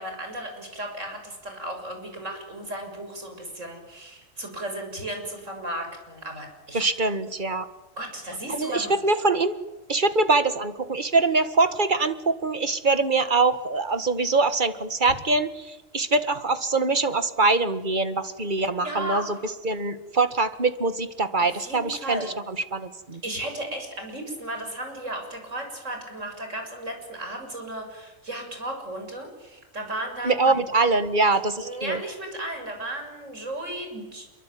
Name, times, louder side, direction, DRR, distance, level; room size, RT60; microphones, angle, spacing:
voice 1, 0.0-6.8 8.0-8.9 18.8-19.2 21.4-22.3 23.2-30.5 31.6-34.3, right 1 dB, 75° right, 4 dB, 7.4 m, -35 dB
voice 2, 6.7-7.7 8.5-9.6 9.9-19.4 19.6-23.2 30.2-32.0, right 3 dB, 40° right, 11 dB, 1.8 m, -23 dB
27.5 x 23.5 x 9.3 m, 1.0 s
omnidirectional pair, 1.3 m